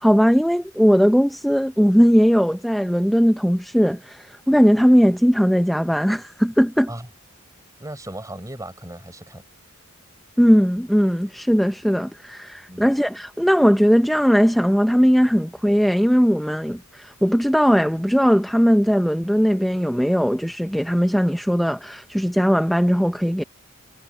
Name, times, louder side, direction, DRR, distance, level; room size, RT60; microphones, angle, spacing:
voice 1, 0.0-6.9 10.4-23.4, equal, ahead, 0.6 m, -18 dB
voice 2, 7.8-9.4 12.7-12.9, right 1 dB, 15° right, 7.1 m, -36 dB
head